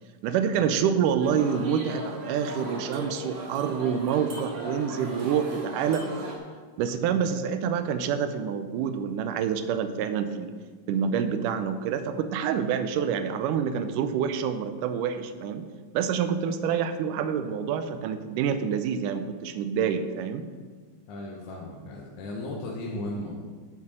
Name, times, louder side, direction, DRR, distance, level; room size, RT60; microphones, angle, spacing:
voice 1, 0.2-6.1 6.8-10.5 10.9-15.7 15.9-20.4, right 7 dB, 85° right, 10 dB, 2.2 m, -27 dB
sound 1, 1.2-6.4, right 1 dB, 60° right, 2.7 m, -38 dB
voice 2, 21.1-23.3, left 1 dB, 75° left, -2 dB, 2.5 m, -35 dB
8.1 x 7.3 x 6.5 m, 1.5 s
omnidirectional pair, 3.7 m